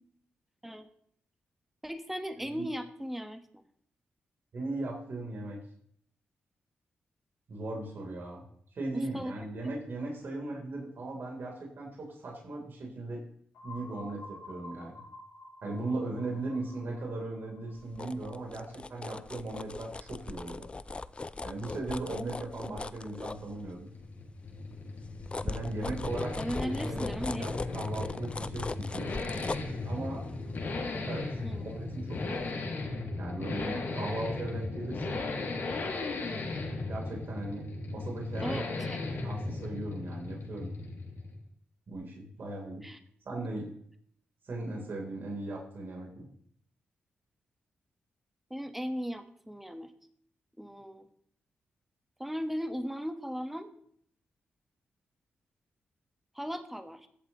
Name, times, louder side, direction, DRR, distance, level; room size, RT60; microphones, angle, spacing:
voice 1, 1.8-3.4 8.9-9.3 26.4-27.5 31.4-31.7 35.0-35.2 38.4-39.0 42.8-43.0 48.5-49.9 50.6-51.1 52.2-53.7 56.3-57.1, equal, 5° right, 7 dB, 1.3 m, -37 dB
voice 2, 2.3-2.7 4.5-5.6 7.5-8.4 8.7-13.2 13.6-15.0 15.6-20.7 21.4-23.9 25.4-26.3 26.6-29.1 29.8-30.3 31.1-31.3 31.6-32.4 33.2-35.2 36.8-38.8 39.2-40.7 41.9-42.8 43.3-43.7 44.5-46.3, right 2 dB, 60° right, -1 dB, 3.6 m, -38 dB
sound 1, 13.5-19.2, left 2 dB, 85° left, 2.7 m, -50 dB
sound 2, 17.7-24.0 24.4-32.0 32.4-32.5, left 3 dB, 30° left, 0.5 m, -40 dB
sound 3, 23.4-41.5, left 3 dB, 70° left, 2.2 m, -36 dB
14.5 x 8.1 x 3.1 m, 0.64 s
cardioid pair, 65°, 4 cm